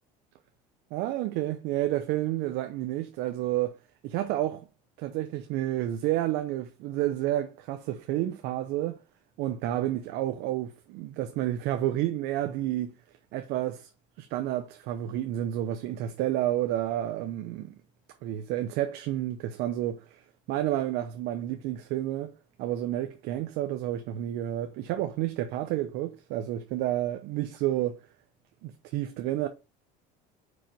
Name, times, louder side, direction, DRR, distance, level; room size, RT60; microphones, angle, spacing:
voice 1, 0.9-3.8 4.0-4.7 5.0-9.0 9.4-12.9 13.3-13.9 14.2-17.7 18.2-28.1 28.6-29.5, right 13 dB, 75° right, 0.7 m, -30 dB
5.2 x 4.9 x 4.4 m
cardioid pair, 120°, 17 cm